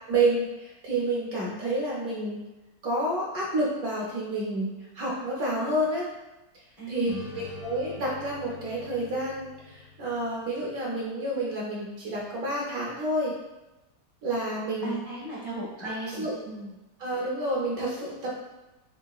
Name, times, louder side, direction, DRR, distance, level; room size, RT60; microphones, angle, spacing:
voice 1, 0.1-2.4 2.8-6.1 6.9-13.3 14.2-15.0 15.8-16.3 17.0-18.3, right 1 dB, 65° right, -4 dB, 0.9 m, -29 dB
voice 2, 6.8-7.2 14.8-16.8, right 2 dB, 50° left, -8 dB, 0.4 m, -37 dB
sound 1, 7.1-10.7, left 3 dB, 75° left, 0.7 m, -44 dB
3.8 x 3.2 x 2.3 m, 1.0 s
omnidirectional pair, 2.0 m